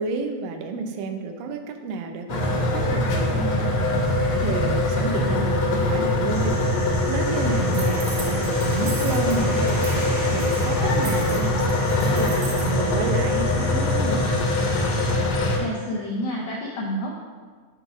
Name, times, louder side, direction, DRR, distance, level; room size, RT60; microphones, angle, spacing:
voice 1, 0.0-3.8 4.3-6.6 7.1-9.9 10.3-11.8 12.1-14.3, right 4 dB, 90° right, 6 dB, 2.4 m, -30 dB
sound 1, 2.3-15.6, left 1 dB, 65° left, 2.0 m, -22 dB
sound 2, 6.3-15.2, equal, 20° right, 1.0 m, -38 dB
sound 3, 7.7-9.4 9.7-10.0 10.3-12.7, right 3 dB, 55° right, 1.2 m, -38 dB
voice 2, 15.6-17.1, left 1 dB, 80° left, -3 dB, 1.4 m, -29 dB
7.8 x 3.5 x 5.9 m, 1.5 s
omnidirectional pair, 3.9 m